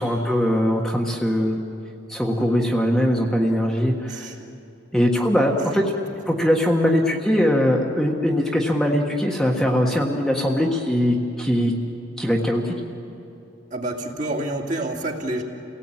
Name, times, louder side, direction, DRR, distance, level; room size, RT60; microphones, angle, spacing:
voice 1, 0.0-1.6 2.1-4.3 4.9-5.8 6.3-11.7 12.2-12.8, equal, ahead, -1 dB, 1.5 m, -21 dB
voice 2, 13.7-15.4, right 1 dB, 40° right, 0 dB, 2.6 m, -28 dB
29.5 x 18.0 x 8.9 m, 2.9 s
head